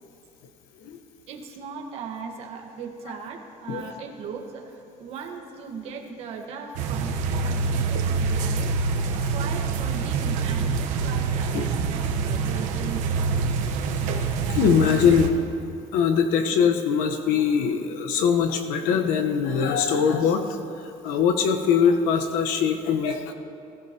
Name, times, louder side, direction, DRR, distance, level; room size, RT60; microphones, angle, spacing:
voice 1, 1.3-13.2, right 5 dB, 50° right, 2 dB, 1.5 m, -38 dB
sound 1, 6.8-15.3, right 4 dB, 70° right, 1.1 m, -26 dB
voice 2, 14.5-15.3 15.9-20.4 20.8-23.3, left 7 dB, 90° left, 5 dB, 1.2 m, -22 dB
21.0 x 15.0 x 3.0 m, 2.6 s
cardioid pair, 170°, 13 cm